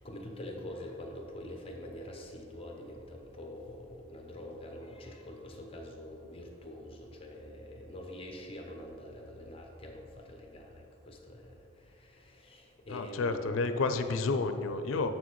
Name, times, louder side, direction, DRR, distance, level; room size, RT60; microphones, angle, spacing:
voice 1, 0.0-13.6, left 1 dB, 30° left, 1 dB, 0.8 m, -45 dB
voice 2, 12.9-15.1, left 3 dB, 85° left, 8 dB, 0.5 m, -30 dB
7.3 x 6.2 x 3.1 m, 2.8 s
head